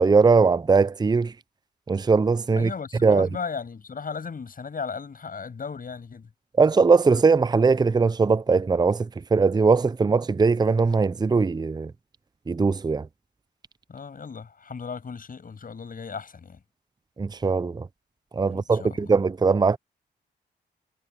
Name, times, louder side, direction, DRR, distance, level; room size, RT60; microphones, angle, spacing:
voice 1, 0.0-1.3 1.9-2.7 3.0-3.3 6.6-11.9 12.5-13.1 17.2-17.9 18.3-19.8, right 4 dB, 25° right, 0.6 m, -20 dB
voice 2, 2.6-6.3 13.9-16.6 18.4-19.2, left 5 dB, 50° left, 7.5 m, -36 dB
cardioid pair, 60°, 18 cm